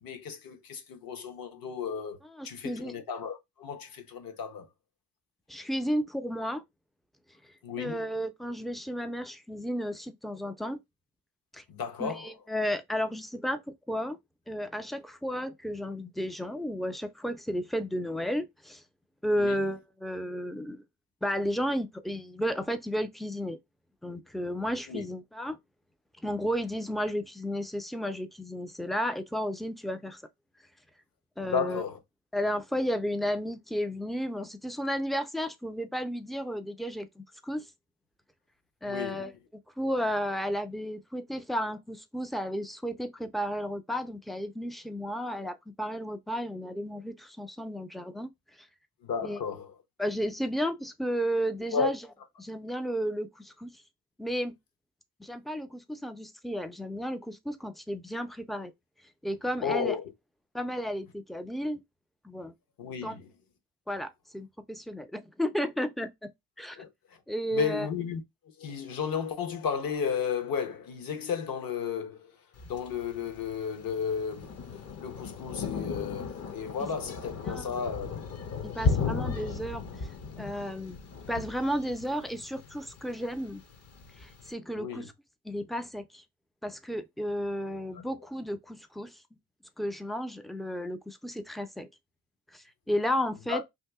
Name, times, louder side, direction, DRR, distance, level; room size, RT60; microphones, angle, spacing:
voice 1, 0.0-2.2 2.4-4.7 7.6-8.1 11.7-12.3 19.4-19.6 24.9-25.0 31.4-32.0 38.9-39.3 49.0-49.7 51.7-51.9 59.6-60.0 62.8-63.3 66.8-67.2 67.5-68.2 68.6-72.3 72.6-74.6 75.0-78.2 84.8-85.1 93.5-93.6, left 6 dB, 55° left, 1.0 m, -33 dB
voice 2, 2.2-2.9 5.5-6.6 7.8-10.8 11.5-11.6 12.0-14.2 14.5-18.8 19.2-20.8 21.2-23.6 24.0-25.6 26.2-30.2 31.4-31.8 32.3-37.7 38.8-39.3 39.8-48.3 49.2-49.4 50.0-52.0 52.4-53.8 54.2-54.6 55.2-58.7 59.2-60.0 60.5-61.8 62.2-62.5 63.0-63.2 63.9-66.3 66.6-66.8 67.3-67.9 76.8-76.9 77.5-77.8 78.6-80.1 80.4-81.0 81.3-83.6 84.2-85.1 85.4-86.2 86.6-89.2 89.8-91.9 92.5-93.6, equal, ahead, 0.3 m, -33 dB
Thunder, 72.6-84.5, left 4 dB, 40° left, 0.7 m, -36 dB
2.8 x 2.6 x 3.4 m
supercardioid pair, 80°, 41 cm